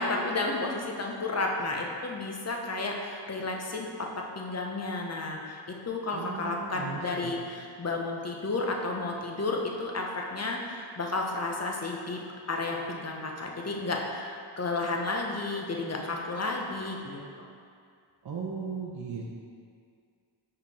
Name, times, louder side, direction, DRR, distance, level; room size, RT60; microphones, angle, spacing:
voice 1, 0.0-3.9 4.3-12.2 12.5-17.2, left 2 dB, 35° left, 0 dB, 0.8 m, -32 dB
voice 2, 6.1-7.3 18.2-19.4, right 5 dB, 50° right, -4 dB, 0.7 m, -37 dB
5.3 x 4.4 x 4.2 m, 2.3 s
cardioid pair, 75°, 48 cm